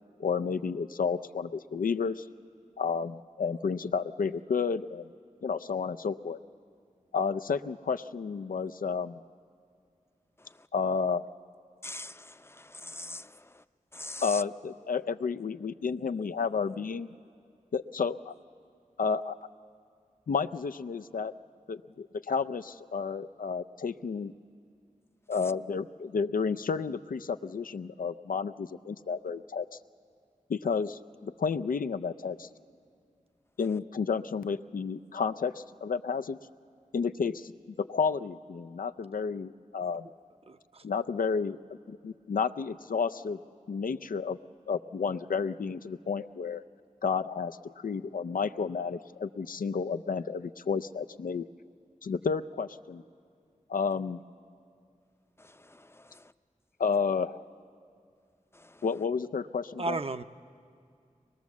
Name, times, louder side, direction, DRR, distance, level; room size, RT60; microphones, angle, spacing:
voice 1, 0.2-2.3 2.8-5.1 5.4-6.4 7.1-9.2 10.7-11.3 14.2-17.1 17.7-18.3 19.0-19.4 20.3-21.3 21.7-24.3 25.3-29.7 30.5-32.5 33.6-36.4 36.9-37.5 37.8-40.1 40.8-41.6 41.9-43.4 43.7-44.4 44.7-46.6 47.0-51.5 52.0-53.0 53.7-54.2 56.8-57.4 58.8-60.0, left 5 dB, 85° left, 10 dB, 0.5 m, -31 dB
voice 2, 11.8-13.6 13.9-14.4 55.4-56.2 58.5-58.8, left 2 dB, 20° left, 13 dB, 0.5 m, -44 dB
voice 3, 40.5-40.8 59.8-60.2, right 2 dB, 45° right, 10 dB, 0.6 m, -33 dB
23.0 x 20.5 x 7.2 m, 2.3 s
wide cardioid pair, 50°, 14 cm